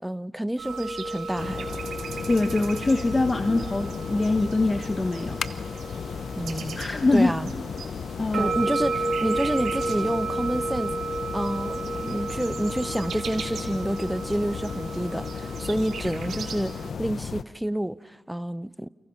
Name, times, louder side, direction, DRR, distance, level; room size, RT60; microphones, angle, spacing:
voice 1, 0.0-1.8 6.4-6.8 7.1-7.5 8.3-10.9 11.3-16.7 17.0-18.9, right 1 dB, 5° right, 0.8 m, -28 dB
sound 1, 0.6-16.9, right 3 dB, 85° right, 3.6 m, -33 dB
sound 2, 1.4-17.4, left 6 dB, 75° left, 0.8 m, -35 dB
voice 2, 2.3-5.4 6.8-7.3 8.2-8.5, left 2 dB, 35° left, 1.2 m, -23 dB
29.5 x 29.5 x 5.9 m
cardioid pair, 60°, 0 cm